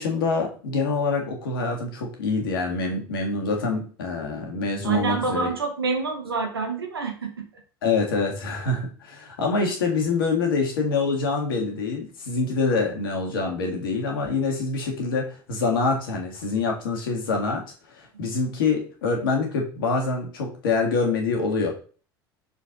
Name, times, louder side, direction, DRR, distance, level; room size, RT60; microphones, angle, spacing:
voice 1, 0.0-5.5 7.8-17.6 17.9-21.7, left 4 dB, 65° left, 1 dB, 1.7 m, -25 dB
voice 2, 4.8-7.4, right 4 dB, 80° right, 3 dB, 1.5 m, -27 dB
6.3 x 4.1 x 3.8 m, 0.39 s
figure-of-eight pair, 70°, 12 cm